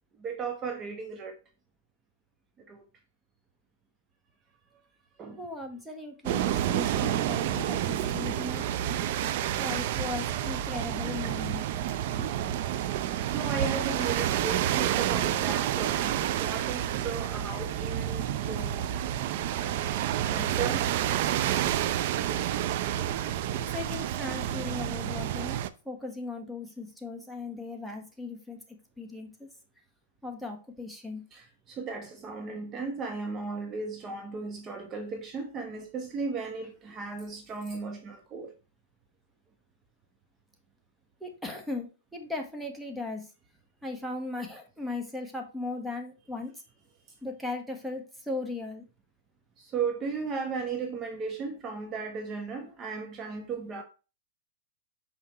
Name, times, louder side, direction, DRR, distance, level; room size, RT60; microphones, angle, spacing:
voice 1, 0.2-1.4 2.7-2.8 5.2-5.4 12.2-12.4 13.2-18.9 19.9-20.9 31.3-38.5 49.6-53.8, right 4 dB, 25° right, 0.9 m, -36 dB
voice 2, 5.4-8.7 9.6-11.6 23.5-25.6 25.8-28.6 29.0-29.3 30.2-31.2 41.2-43.3 43.8-46.5 47.2-48.8, left 3 dB, ahead, 1.3 m, -37 dB
sound 1, 6.2-25.7, right 11 dB, 55° right, 0.5 m, -29 dB
5.8 x 5.7 x 3.0 m
hypercardioid pair, 135°, 0 cm